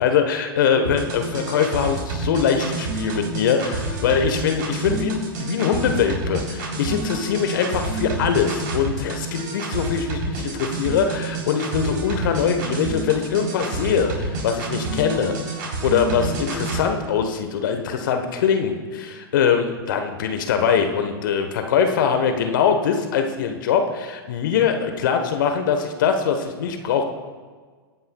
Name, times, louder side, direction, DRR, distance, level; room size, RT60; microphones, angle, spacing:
voice 1, 0.0-27.0, left 7 dB, 55° left, 6 dB, 1.2 m, -22 dB
sound 1, 0.8-16.8, right 3 dB, 50° right, 3.7 m, -28 dB
21.5 x 9.3 x 2.3 m, 1.5 s
figure-of-eight pair, 105°, 13 cm